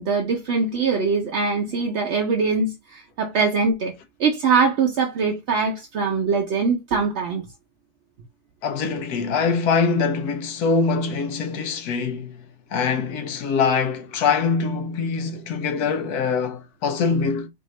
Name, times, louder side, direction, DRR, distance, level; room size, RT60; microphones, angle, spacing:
voice 1, 0.0-3.9 4.2-7.4, right 4 dB, 55° right, 0.8 m, -22 dB
voice 2, 8.6-12.4 12.7-17.5, left 5 dB, 80° left, 1.3 m, -23 dB
4.3 x 2.6 x 3.2 m
omnidirectional pair, 1.6 m